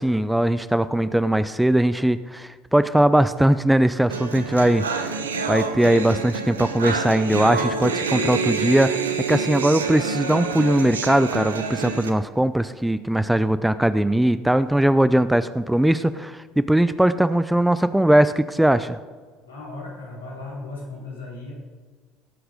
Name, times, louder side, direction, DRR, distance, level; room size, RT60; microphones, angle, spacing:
voice 1, 0.0-4.8 5.5-19.0, right 1 dB, 5° right, 14 dB, 0.5 m, -20 dB
sound 1, 4.1-12.1, right 4 dB, 80° right, 1.0 m, -27 dB
voice 2, 19.4-21.5, left 2 dB, 80° left, -4 dB, 3.9 m, -37 dB
18.0 x 8.0 x 5.2 m, 1.5 s
figure-of-eight pair, 60°, 0 cm